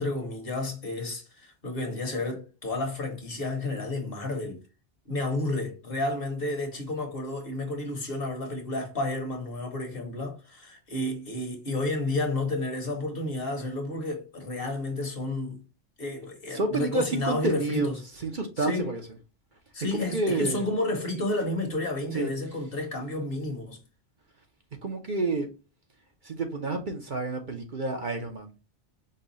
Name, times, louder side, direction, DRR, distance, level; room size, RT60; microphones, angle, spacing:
voice 1, 0.0-4.6 5.1-15.6 16.0-18.0 18.6-18.9 19.7-23.8, left 2 dB, 50° left, 1.3 m, -31 dB
voice 2, 16.5-19.0 19.9-20.6 22.1-22.3 24.8-25.5 26.2-28.6, right 2 dB, 45° right, 1.0 m, -29 dB
5.5 x 2.3 x 4.0 m
omnidirectional pair, 1.2 m